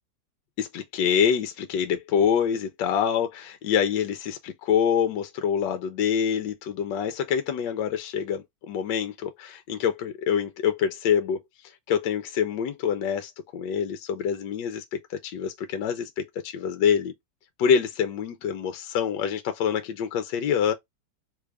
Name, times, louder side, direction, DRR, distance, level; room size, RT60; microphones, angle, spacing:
voice 1, 0.6-11.4 11.9-17.1 17.6-20.7, left 8 dB, 75° left, 1.2 m, -26 dB
3.4 x 2.4 x 3.2 m
omnidirectional pair, 2.1 m